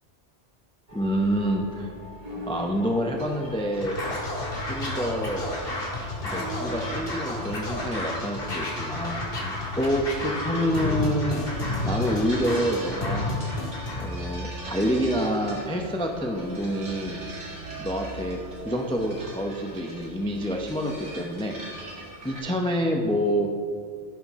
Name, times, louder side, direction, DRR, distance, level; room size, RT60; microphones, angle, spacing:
voice 1, 0.9-1.9 2.5-4.0 4.7-5.5 6.2-9.5 9.8-11.4 11.8-13.4 13.9-17.2 17.8-21.6 22.2-23.5, equal, 5° left, 2 dB, 0.5 m, -27 dB
sound 1, 0.9-18.8, right 1 dB, 35° right, 1.3 m, -42 dB
sound 2, 3.2-22.4, right 1 dB, 75° right, 2.5 m, -43 dB
Scratching (performance technique), 3.7-14.1, left 2 dB, 55° left, 1.9 m, -31 dB
15.0 x 5.9 x 3.6 m, 2.1 s
omnidirectional pair, 1.2 m